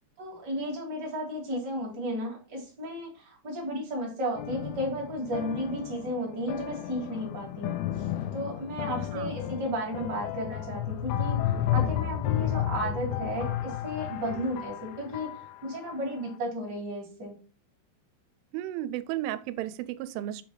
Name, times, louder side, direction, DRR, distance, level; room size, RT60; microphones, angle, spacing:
voice 1, 0.2-7.8 8.3-15.3 15.6-17.3, equal, 40° right, 1.6 m, -33 dB
sound 1, 4.4-15.8, left 11 dB, 80° left, 2.7 m, -32 dB
voice 2, 18.5-20.4, right 13 dB, 85° right, 3.1 m, -34 dB
7.6 x 3.4 x 4.7 m
omnidirectional pair, 5.5 m